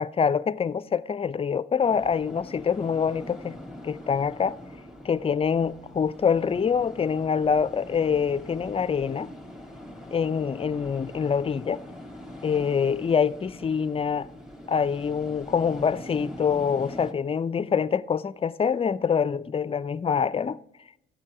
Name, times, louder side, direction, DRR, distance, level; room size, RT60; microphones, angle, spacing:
voice 1, 0.0-3.6 3.8-4.6 5.0-9.3 10.1-11.8 12.4-14.3 14.7-20.6, left 6 dB, 30° left, 0.5 m, -25 dB
sound 1, 1.8-17.1, left 1 dB, ahead, 1.8 m, -43 dB
14.0 x 8.7 x 4.8 m
cardioid pair, 90°, 20 cm